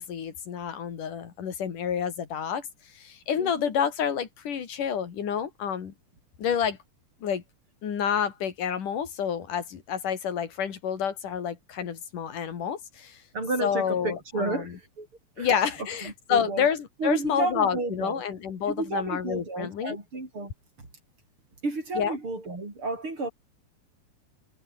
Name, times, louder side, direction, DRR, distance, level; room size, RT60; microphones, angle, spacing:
voice 1, 0.0-2.7 3.0-5.9 6.4-6.8 7.2-7.4 7.8-13.2 13.6-14.8 15.4-20.0 22.0-22.2, left 8 dB, 85° left, 4.4 m, -29 dB
voice 2, 3.4-3.7 13.3-15.1 15.4-15.5 16.0-16.7 17.0-18.2 18.7-20.5 21.6-23.3, right 2 dB, 40° right, 7.3 m, -31 dB
omnidirectional pair, 3.6 m